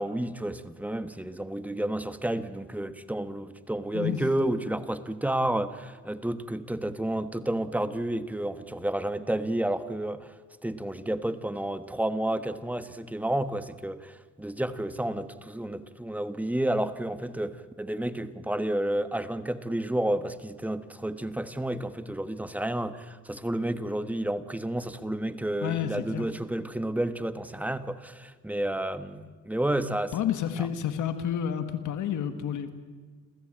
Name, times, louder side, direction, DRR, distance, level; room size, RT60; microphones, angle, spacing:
voice 1, 0.0-10.3 10.6-30.1 30.6-30.7, right 1 dB, 5° right, 10 dB, 1.3 m, -31 dB
voice 2, 25.6-26.3 30.1-32.7, left 9 dB, 75° left, 9 dB, 1.8 m, -30 dB
28.0 x 15.0 x 8.8 m, 1.5 s
cardioid pair, 90°, 30 cm